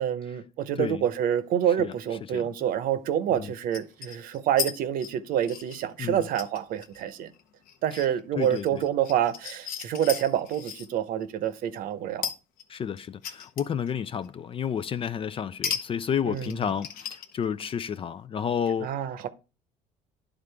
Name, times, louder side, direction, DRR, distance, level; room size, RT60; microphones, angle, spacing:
voice 1, 0.0-7.3 7.8-12.3 16.3-16.5 18.8-19.3, right 10 dB, 65° right, 0.9 m, -27 dB
metal wrenches general handling foley, 1.6-1.7 3.7-4.7 5.0-10.9 12.2-13.9 14.2-14.3 15.6-15.8 16.1-17.7, left 8 dB, 65° left, 0.9 m, -36 dB
voice 2, 8.4-8.8 12.7-19.0, left 8 dB, 35° left, 0.4 m, -31 dB
11.0 x 3.8 x 3.3 m
supercardioid pair, 90°, 16 cm